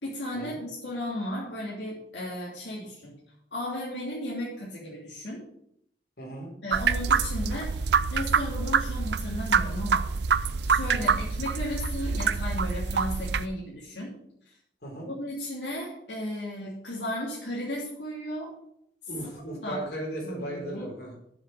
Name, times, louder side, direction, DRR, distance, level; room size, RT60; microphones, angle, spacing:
voice 1, 0.0-3.1 3.5-5.4 6.6-10.1 10.6-14.1 15.1-18.5 19.6-19.8 20.2-20.9, left 1 dB, 80° left, -5 dB, 2.9 m, -35 dB
voice 2, 6.2-6.5 11.0-11.2 14.8-15.1 19.1-21.1, right 1 dB, 60° left, -2 dB, 4.1 m, -36 dB
sound 1, 6.7-13.5, right 5 dB, 70° right, 0.5 m, -26 dB
7.3 x 6.8 x 7.7 m, 0.73 s
head